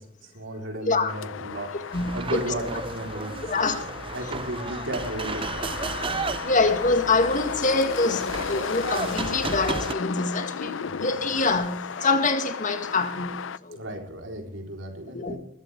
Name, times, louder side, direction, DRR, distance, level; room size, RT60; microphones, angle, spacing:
voice 1, 0.0-3.4 3.7-5.7 6.0-6.2 10.9-11.0 13.7-15.4, right 1 dB, 85° right, 3.8 m, -34 dB
sound 1, 1.1-13.6, left 6 dB, 85° left, 0.5 m, -34 dB
voice 2, 1.9-2.4 3.5-3.8 6.4-13.8 15.1-15.4, left 3 dB, 45° left, 1.8 m, -25 dB
sound 2, 1.9-9.9, right 4 dB, 25° right, 0.5 m, -34 dB
20.5 x 14.5 x 3.5 m
head